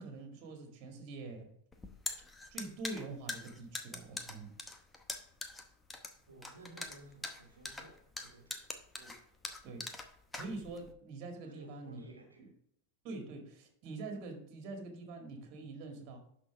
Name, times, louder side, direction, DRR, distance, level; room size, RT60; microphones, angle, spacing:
voice 1, 0.0-1.5 2.5-4.5 9.0-9.1 9.6-9.9 10.3-12.0 12.4-12.5 13.0-16.2, right 3 dB, 40° right, 4 dB, 2.0 m, -45 dB
sound 1, 1.7-10.9, left 2 dB, 10° left, 0.8 m, -43 dB
voice 2, 6.3-8.7 11.4-12.5, right 2 dB, 75° right, 2 dB, 1.3 m, -56 dB
11.5 x 4.2 x 3.4 m, 0.69 s
figure-of-eight pair, 90°, 0 cm